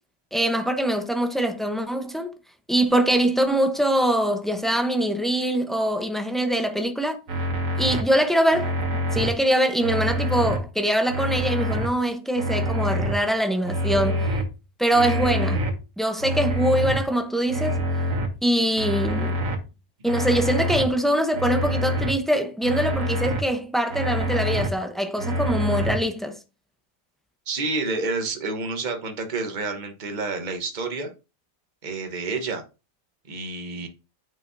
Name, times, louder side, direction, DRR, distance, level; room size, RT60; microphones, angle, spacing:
voice 1, 0.3-2.3 2.7-7.2 7.8-8.7 9.1-14.3 14.8-15.7 16.0-17.8 18.4-19.4 20.0-26.4, right 1 dB, ahead, 0.5 m, -23 dB
sound 1, 7.3-8.0 8.5-9.3 9.8-10.6 11.1-11.9 12.4-13.1 13.6-14.4 14.9-15.7 16.2-17.0 17.5-18.3 18.8-19.6 20.1-20.8 21.3-22.1 22.6-23.4 23.9-24.7 25.2-26.0, equal, 55° right, 1.5 m, -26 dB
voice 2, 27.5-31.1 31.8-32.6 33.3-33.9, right 3 dB, 30° right, 1.2 m, -29 dB
8.9 x 5.6 x 2.7 m
omnidirectional pair, 1.8 m